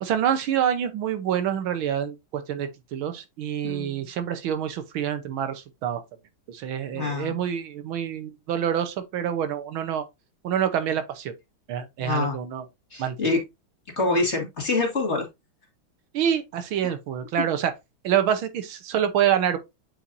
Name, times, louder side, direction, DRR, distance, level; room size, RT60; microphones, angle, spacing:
voice 1, 0.0-6.0 6.5-10.0 10.4-11.3 11.7-12.6 13.0-13.3 16.1-17.7 18.0-19.6, right 9 dB, 80° right, 1.7 m, -26 dB
voice 2, 3.6-4.1 6.9-7.4 12.0-12.3 12.9-13.4 14.0-15.3 16.8-16.9, left 3 dB, 35° left, 2.0 m, -26 dB
8.2 x 4.5 x 2.6 m
omnidirectional pair, 2.3 m